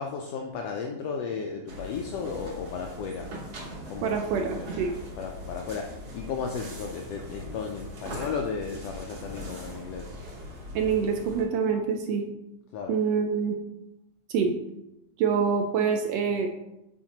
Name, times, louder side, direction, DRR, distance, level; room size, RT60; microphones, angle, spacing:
voice 1, 0.0-3.3 3.9-4.7 5.1-10.1 12.7-13.0, left 5 dB, 90° left, 2 dB, 1.4 m, -34 dB
sound 1, 1.7-11.5, equal, 55° right, 2.7 m, -41 dB
voice 2, 4.0-4.9 10.7-12.2 12.9-13.6 14.3-14.5 15.2-16.5, right 6 dB, 80° right, 4 dB, 1.5 m, -26 dB
7.3 x 5.1 x 2.8 m, 0.92 s
omnidirectional pair, 3.4 m